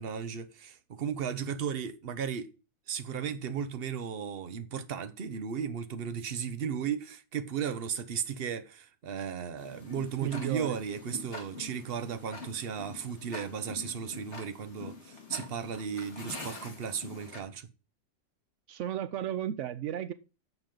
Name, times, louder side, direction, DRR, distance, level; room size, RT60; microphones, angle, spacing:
voice 1, 0.0-2.5 2.9-17.7, right 7 dB, 50° right, 0.7 m, -35 dB
Tick-tock, 9.6-17.4, left 3 dB, 40° left, 2.5 m, -45 dB
voice 2, 10.2-10.8 18.7-20.1, right 10 dB, 90° right, 0.6 m, -34 dB
11.0 x 7.1 x 3.8 m
omnidirectional pair, 2.0 m